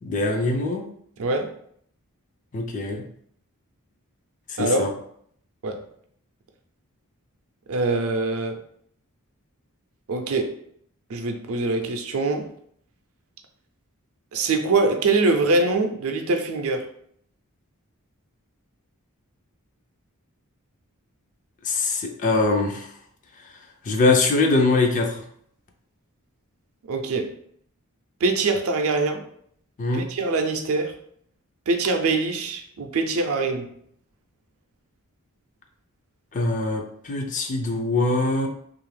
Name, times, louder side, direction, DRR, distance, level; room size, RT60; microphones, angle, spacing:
voice 1, 0.0-0.8 2.5-3.0 4.6-4.9 21.7-22.9 23.9-25.2 29.8-30.0 36.3-38.5, left 3 dB, 35° left, 0.4 m, -22 dB
voice 2, 1.2-1.6 4.6-4.8 5.6-5.8 7.7-8.6 10.1-10.5 11.1-12.5 14.3-16.9 26.9-27.3 28.2-29.2 29.9-31.0 31.7-33.7, right 3 dB, 65° right, 0.5 m, -23 dB
2.7 x 2.4 x 3.2 m
head